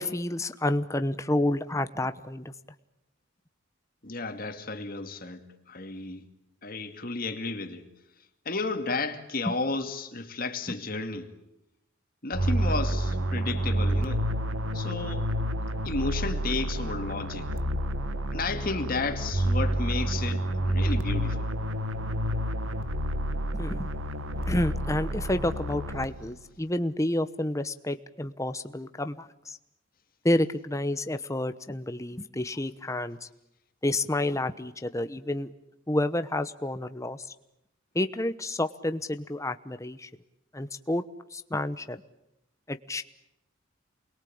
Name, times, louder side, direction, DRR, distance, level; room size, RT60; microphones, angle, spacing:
voice 1, 0.0-2.5 23.5-23.9 24.5-29.6 30.2-33.2 33.8-35.5 35.9-37.2 37.9-40.1 40.5-41.0 41.3-42.0 42.7-43.0, left 1 dB, 15° left, 1.0 m, -29 dB
voice 2, 4.0-6.2 6.6-7.8 8.5-11.3 12.2-14.2 14.7-15.3 15.8-17.5 18.3-21.5, left 3 dB, 45° left, 2.4 m, -33 dB
sound 1, 12.3-26.4, right 1 dB, 80° right, 1.7 m, -29 dB
29.0 x 22.0 x 8.7 m
head